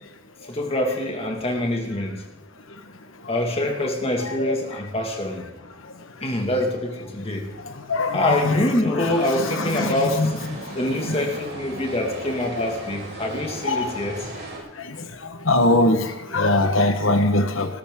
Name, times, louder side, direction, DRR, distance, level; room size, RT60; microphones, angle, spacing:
voice 1, 0.4-2.2 3.3-5.4 6.2-7.5 8.1-10.4 10.7-14.3, left 1 dB, 30° left, 2 dB, 2.2 m, -25 dB
voice 2, 7.9-8.6 9.6-10.3 13.7-13.8 15.5-16.0 16.3-17.7, left 2 dB, 70° left, 7 dB, 1.4 m, -20 dB
sound 1, 9.0-14.6, right 2 dB, 55° right, 5.6 m, -38 dB
19.5 x 13.5 x 3.8 m, 0.98 s
head